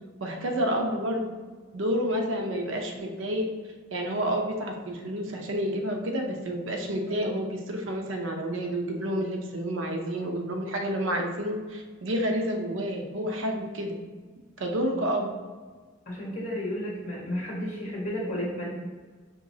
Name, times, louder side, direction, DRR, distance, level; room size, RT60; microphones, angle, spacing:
voice 1, 0.2-1.3 1.7-3.5 3.9-13.9 14.6-15.3, equal, 65° right, 2 dB, 0.6 m, -29 dB
voice 2, 16.0-18.7, equal, 35° left, -4 dB, 1.3 m, -32 dB
5.1 x 3.0 x 2.7 m, 1.4 s
head